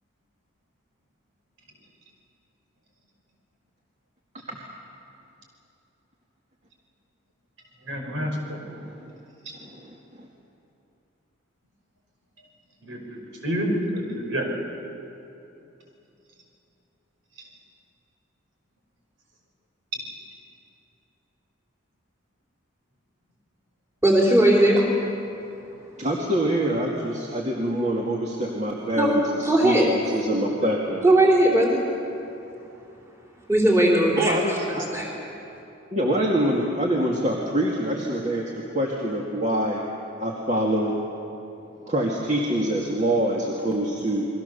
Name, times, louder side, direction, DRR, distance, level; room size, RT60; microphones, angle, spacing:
voice 1, 7.9-8.6 12.8-14.5 19.9-20.0, equal, 70° right, 5.2 m, -28 dB
voice 2, 8.7-9.1 9.6-10.3 26.0-31.0 34.2-34.9 35.1-35.2 35.9-39.8 40.2-41.0 41.9-44.3, right 1 dB, 35° right, 2.3 m, -25 dB
voice 3, 24.0-24.9 29.0-29.2 29.4-29.9 31.0-31.8 33.5-34.4 34.9-35.1, right 1 dB, 15° right, 3.5 m, -18 dB
30.0 x 22.5 x 7.0 m
head